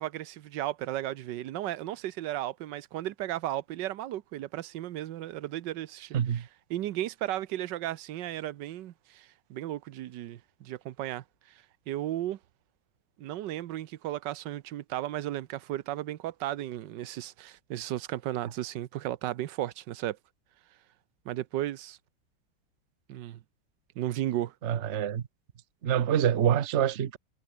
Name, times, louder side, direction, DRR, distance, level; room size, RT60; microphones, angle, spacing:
voice 1, 0.0-11.2 11.9-12.4 13.2-20.2 21.2-22.0 23.1-23.4 24.0-24.5, right 13 dB, 75° right, 1.4 m, -35 dB
voice 2, 6.1-6.4 24.6-25.2 25.8-27.2, right 9 dB, 50° right, 1.0 m, -26 dB
omnidirectional pair, 2.0 m